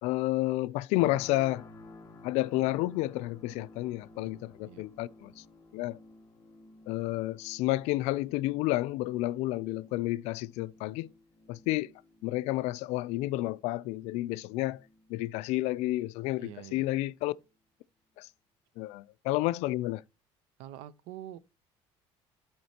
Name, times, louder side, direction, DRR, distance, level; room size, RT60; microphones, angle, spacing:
voice 1, 0.0-1.7 2.2-5.4 5.7-6.0 6.9-11.1 11.5-11.9 12.2-14.8 15.1-17.3 18.2-18.3 18.8-20.0, left 17 dB, 75° left, 0.4 m, -30 dB
sound 1, 1.0-16.0 16.5-16.7, left 2 dB, 25° left, 1.0 m, -55 dB
voice 2, 16.4-16.9 20.6-21.4, right 12 dB, 90° right, 0.6 m, -45 dB
12.5 x 4.3 x 2.8 m
cardioid pair, 155°, 11 cm